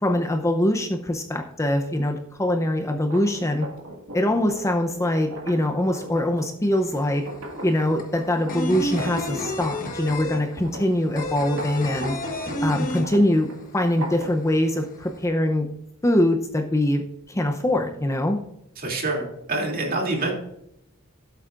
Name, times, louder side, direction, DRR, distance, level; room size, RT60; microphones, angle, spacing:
voice 1, 0.0-3.7 4.1-7.3 7.6-12.2 12.6-13.5 13.7-15.7 16.0-17.0 17.3-18.4, left 1 dB, 15° left, 5 dB, 0.6 m, -23 dB
sound 1, 3.0-10.0 10.3-14.5, right 1 dB, 65° right, 2.0 m, -39 dB
sound 2, 6.8-6.9 7.1-13.7 14.0-14.1 14.4-15.2, left 1 dB, 40° left, 1.3 m, -30 dB
voice 2, 18.8-20.3, right 2 dB, 45° right, 0 dB, 2.8 m, -26 dB
16.0 x 8.1 x 2.5 m, 0.79 s
head